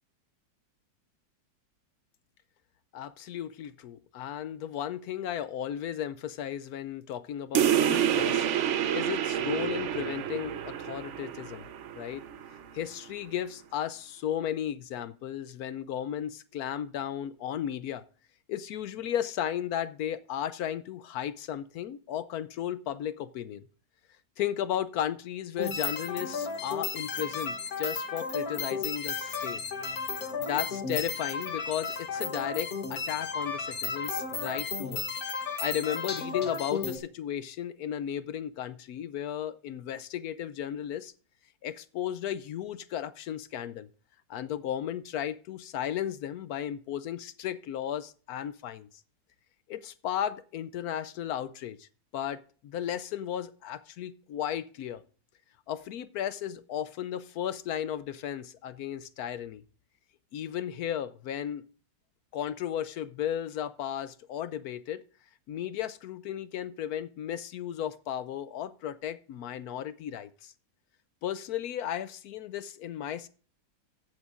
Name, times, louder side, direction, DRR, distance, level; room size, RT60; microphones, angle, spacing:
voice 1, 2.9-8.5 8.9-11.7 11.9-12.2 12.7-18.0 18.5-23.6 24.4-29.6 30.4-35.0 35.6-41.1 41.6-43.9 44.3-48.9 49.7-55.0 55.7-59.6 60.3-61.6 62.3-65.0 65.5-70.5 71.2-73.3, left 10 dB, 70° left, 15 dB, 0.9 m, -35 dB
sound 1, 7.5-12.6, right 9 dB, 65° right, 0.7 m, -28 dB
sound 2, 25.6-37.0, left 5 dB, 55° left, 1.7 m, -34 dB
15.5 x 8.0 x 2.5 m, 0.39 s
omnidirectional pair, 2.0 m